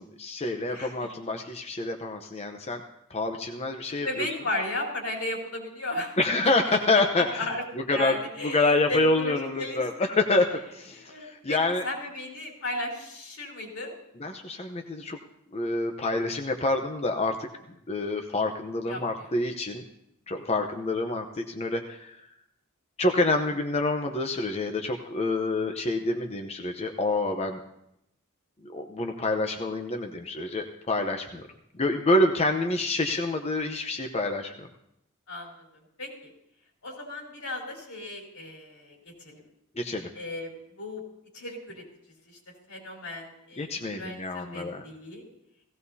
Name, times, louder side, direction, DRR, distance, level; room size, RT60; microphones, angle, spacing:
voice 1, 0.0-2.8 3.1-4.3 6.2-7.5 7.9-8.1 8.4-11.9 14.2-15.2 15.5-17.5 17.9-19.8 20.3-22.2 23.0-27.6 28.7-31.5 31.7-34.7 39.8-40.1 43.6-44.8, left 2 dB, 30° left, 4 dB, 0.8 m, -27 dB
voice 2, 0.7-1.1 4.0-6.2 6.7-6.8 7.1-7.6 7.9-10.1 10.9-11.6 11.8-13.9 18.9-19.3 35.3-35.7 36.0-36.3 36.8-39.4 40.1-41.0 41.3-41.8 42.3-42.4 42.7-45.2, left 1 dB, 85° left, -1 dB, 4.1 m, -35 dB
17.5 x 16.5 x 2.8 m, 0.79 s
head